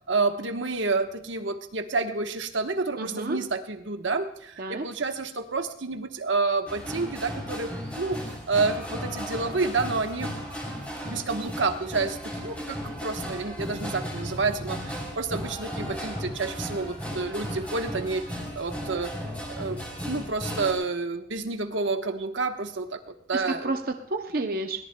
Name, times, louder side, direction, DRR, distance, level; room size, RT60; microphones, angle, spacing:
voice 1, 0.1-10.4 11.0-19.1 19.5-23.7, right 3 dB, 80° right, 6 dB, 1.1 m, -29 dB
voice 2, 2.9-3.4 4.6-4.8 23.3-24.8, right 2 dB, 50° right, 5 dB, 0.6 m, -30 dB
sound 1, 6.7-20.7, equal, 5° left, 3.2 m, -35 dB
21.5 x 17.5 x 2.2 m, 0.68 s
head